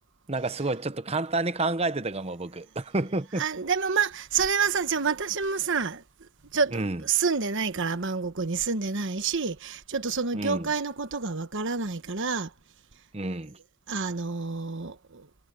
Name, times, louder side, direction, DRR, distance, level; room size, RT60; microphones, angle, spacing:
voice 1, 0.3-3.4 6.7-7.0 10.3-10.7 13.1-13.6, right 2 dB, 25° right, 0.9 m, -29 dB
voice 2, 3.4-6.0 6.5-12.5 13.9-15.3, right 5 dB, 55° right, 1.2 m, -28 dB
head